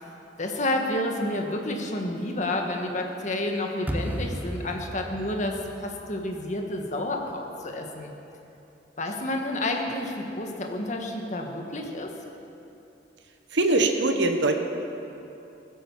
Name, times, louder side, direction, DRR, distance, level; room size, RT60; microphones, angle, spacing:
voice 1, 0.4-8.1 9.0-12.1, left 1 dB, 40° left, 2 dB, 1.6 m, -30 dB
sound 1, 3.9-7.0, equal, 10° right, 0.8 m, -35 dB
voice 2, 13.5-14.6, right 2 dB, 85° right, 5 dB, 1.1 m, -22 dB
17.0 x 10.0 x 7.3 m, 2.8 s
head